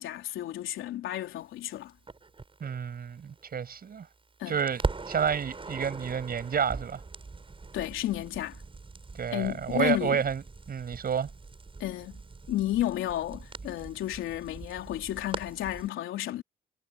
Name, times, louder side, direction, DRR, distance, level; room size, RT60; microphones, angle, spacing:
voice 1, 0.0-1.9 4.4-4.6 7.7-8.6 9.3-10.2 11.8-12.2 12.5-16.4, left 13 dB, 85° left, 3.5 m, -32 dB
Crackle, 2.1-4.2 4.5-15.9, right 3 dB, 25° right, 7.4 m, -41 dB
voice 2, 2.6-4.1 4.5-4.8 5.1-7.0 9.2-10.4 10.7-11.3, right 7 dB, 50° right, 6.2 m, -29 dB
cardioid pair, 90°, 20 cm